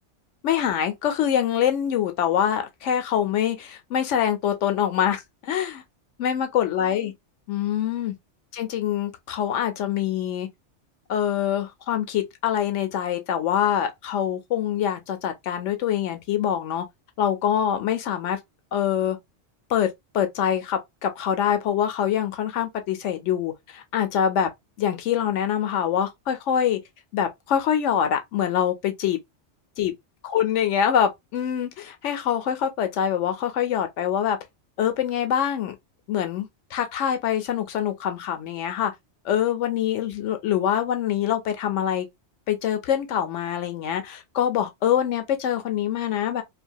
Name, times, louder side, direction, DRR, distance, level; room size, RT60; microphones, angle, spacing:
voice 1, 0.4-5.8 6.2-7.1 7.5-8.1 8.5-10.5 11.1-16.8 17.2-18.4 18.7-19.2 19.7-24.5 24.8-26.8 27.1-29.2 29.8-29.9 30.2-34.4 34.8-35.7 36.1-38.9 39.2-42.1 42.5-46.4, left 9 dB, 85° left, 1.0 m, -24 dB
2.7 x 2.2 x 2.6 m
omnidirectional pair, 1.2 m